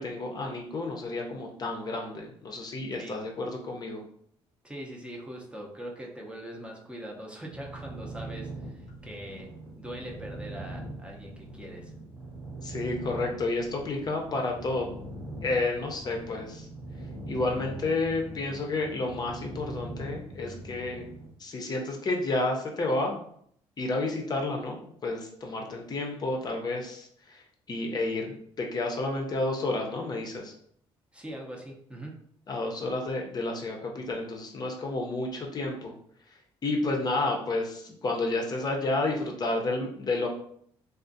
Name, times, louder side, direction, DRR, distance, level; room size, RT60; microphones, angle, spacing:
voice 1, 0.0-4.0 12.6-14.9 15.4-16.7 17.3-21.0 21.4-23.2 23.8-27.4 27.7-30.5 32.5-35.9 36.6-40.3, left 2 dB, 40° left, 1 dB, 0.5 m, -31 dB
voice 2, 4.6-9.5 9.8-11.9 31.1-32.3, right 1 dB, 10° right, -1 dB, 0.6 m, -42 dB
sound 1, 7.5-21.3, right 1 dB, 30° right, 1.0 m, -41 dB
2.4 x 2.3 x 2.5 m, 0.65 s
cardioid pair, 85°, 11 cm